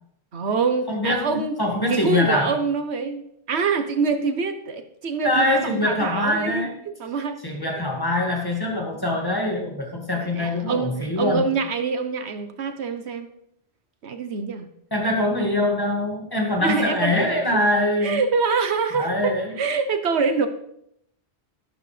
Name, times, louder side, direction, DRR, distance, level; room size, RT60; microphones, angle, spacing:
voice 1, 0.3-1.6 1.9-6.7 7.0-7.4 10.1-13.3 14.0-14.7 15.3-15.4 16.6-17.6 18.0-20.5, right 5 dB, 85° right, 8 dB, 1.3 m, -25 dB
voice 2, 0.9-2.6 5.2-6.8 7.4-11.4 14.9-18.2 18.9-19.5, left 1 dB, 20° left, 0 dB, 2.0 m, -23 dB
13.0 x 11.5 x 3.3 m, 0.73 s
omnidirectional pair, 1.1 m